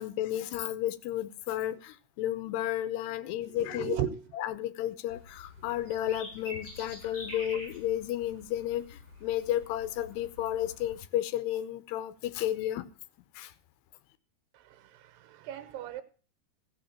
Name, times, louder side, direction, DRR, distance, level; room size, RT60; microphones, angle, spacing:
voice 1, 0.0-4.0 4.3-12.9 13.4-13.5, left 12 dB, 85° left, 3.0 m, -32 dB
voice 2, 3.5-4.2 7.1-7.2 14.7-16.0, right 11 dB, 85° right, 3.1 m, -36 dB
sound 1, 5.1-11.0, left 1 dB, 20° left, 8.3 m, -47 dB
15.5 x 6.5 x 7.2 m
omnidirectional pair, 4.8 m